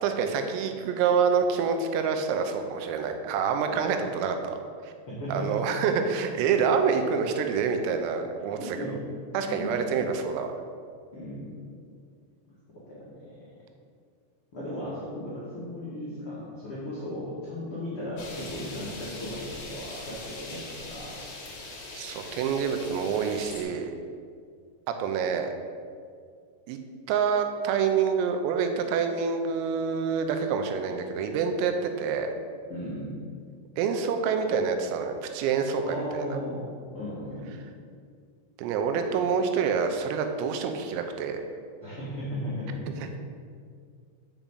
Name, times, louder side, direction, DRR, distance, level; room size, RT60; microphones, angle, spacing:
voice 1, 0.0-4.6 4.8-4.9 5.3-8.8 9.3-10.5 21.9-23.9 25.0-25.5 26.7-26.8 27.1-32.3 33.8-36.4 38.6-41.4 43.0-43.2, right 6 dB, 85° right, 6 dB, 3.4 m, -27 dB
voice 2, 5.1-5.6 8.5-9.0 9.4-10.2 11.1-11.6 12.9-13.4 14.5-21.2 32.7-33.1 35.8-37.6 41.8-42.8, equal, 85° left, -9 dB, 1.2 m, -36 dB
sound 1, 18.2-23.6, left 2 dB, 55° left, 2.3 m, -41 dB
7.3 x 5.3 x 7.3 m, 2.2 s
omnidirectional pair, 5.9 m